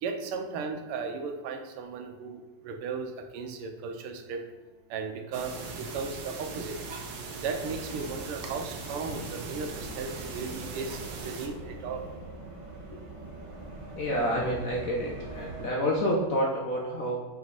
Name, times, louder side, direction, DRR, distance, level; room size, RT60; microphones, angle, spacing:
voice 1, 0.0-4.4 4.9-6.8 7.4-12.1, right 5 dB, 85° right, 5 dB, 1.7 m, -36 dB
sound 1, 5.3-11.5, right 4 dB, 60° right, 1.3 m, -40 dB
sound 2, 6.9-15.7, right 2 dB, 40° right, 0.4 m, -43 dB
voice 2, 14.0-17.2, equal, 55° left, -3 dB, 1.0 m, -28 dB
5.8 x 4.7 x 4.0 m, 1.2 s
omnidirectional pair, 2.4 m